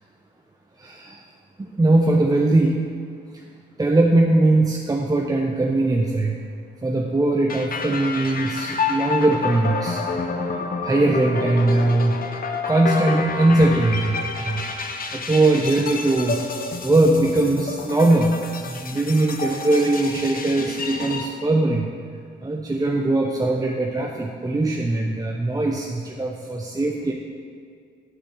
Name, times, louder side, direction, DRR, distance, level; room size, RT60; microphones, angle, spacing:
voice 1, 0.8-1.2 1.6-2.8 3.8-6.4 6.8-10.0 10.8-12.2 12.7-14.7 15.1-18.4 18.7-21.9 22.4-27.1, right 2 dB, 20° right, 0 dB, 0.8 m, -20 dB
sound 1, 7.5-21.2, left 4 dB, 45° left, 1.0 m, -29 dB
7.3 x 7.0 x 7.1 m, 2.2 s
cardioid pair, 75°, 20 cm